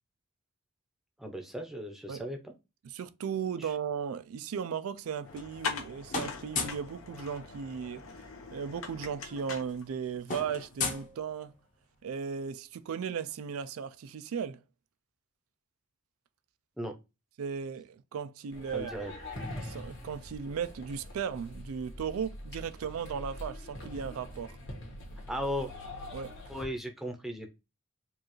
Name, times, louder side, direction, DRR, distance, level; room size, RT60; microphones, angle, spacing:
voice 1, 1.2-2.5 3.6-3.7 16.8-17.0 18.7-19.1 25.3-25.7 26.5-27.5, equal, ahead, 0.6 m, -36 dB
voice 2, 2.8-8.0 8.5-11.5 12.0-14.6 17.4-18.9 19.6-24.6 26.1-26.4, right 7 dB, 85° right, 0.4 m, -36 dB
sound 1, 5.0-5.8 6.1-6.9 8.3-8.4 8.6-8.8 9.1-11.7, left 4 dB, 35° left, 0.8 m, -37 dB
sound 2, 5.3-10.3, left 5 dB, 80° left, 0.9 m, -41 dB
sound 3, 18.5-26.6, left 1 dB, 55° left, 1.4 m, -44 dB
4.6 x 2.4 x 2.9 m
head